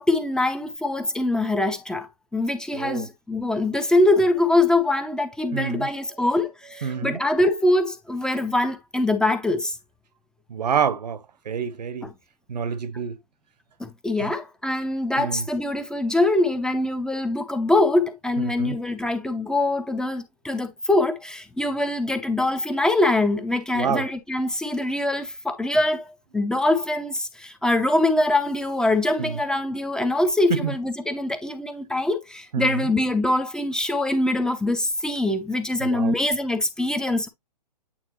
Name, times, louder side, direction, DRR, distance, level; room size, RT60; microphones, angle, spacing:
voice 1, 0.0-9.8 12.0-12.1 13.8-37.3, left 2 dB, 5° left, 0.6 m, -23 dB
voice 2, 5.5-5.9 6.8-7.2 10.5-12.1 12.5-13.2 14.2-14.3 15.2-15.4 18.4-18.8 23.7-24.1 29.2-29.4 30.5-30.7 32.5-32.9 35.8-36.1, right 7 dB, 75° right, 0.9 m, -27 dB
8.7 x 3.6 x 3.0 m
hypercardioid pair, 140°, 21 cm